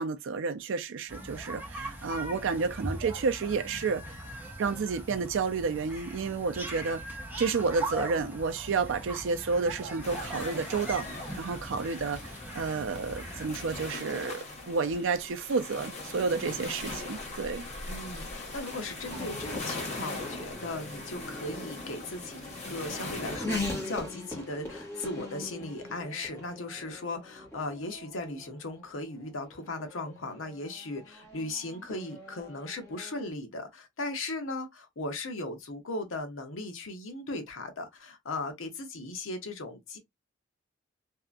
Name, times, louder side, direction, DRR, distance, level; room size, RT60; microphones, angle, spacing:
voice 1, 0.0-4.2 4.6-7.0 7.4-11.1 11.4-17.7, right 4 dB, 65° right, 0.4 m, -30 dB
sound 1, 1.1-13.9, right 1 dB, 10° right, 0.6 m, -40 dB
sound 2, 10.0-23.4, left 2 dB, 35° left, 1.1 m, -41 dB
Race car auto racing / Accelerating revving vroom, 17.2-33.3, left 2 dB, 10° left, 1.2 m, -42 dB
voice 2, 17.8-40.0, left 2 dB, 70° left, 0.8 m, -37 dB
2.7 x 2.4 x 2.3 m
head